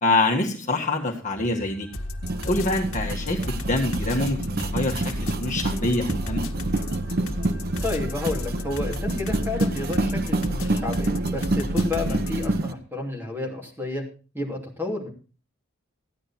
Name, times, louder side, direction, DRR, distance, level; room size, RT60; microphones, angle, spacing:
voice 1, 0.0-1.9 2.5-5.0 5.4-6.4 12.1-12.2, left 2 dB, 35° left, 0 dB, 1.7 m, -25 dB
sound 1, 1.3-12.1, right 1 dB, 80° right, 4.0 m, -43 dB
sound 2, 1.9-12.6, left 1 dB, 90° left, 1.4 m, -33 dB
sound 3, 2.2-12.7, right 2 dB, 50° right, 0.9 m, -28 dB
voice 2, 7.8-14.0 14.3-15.1, left 2 dB, 10° right, 0 dB, 2.9 m, -31 dB
14.5 x 10.0 x 4.3 m, 0.37 s
head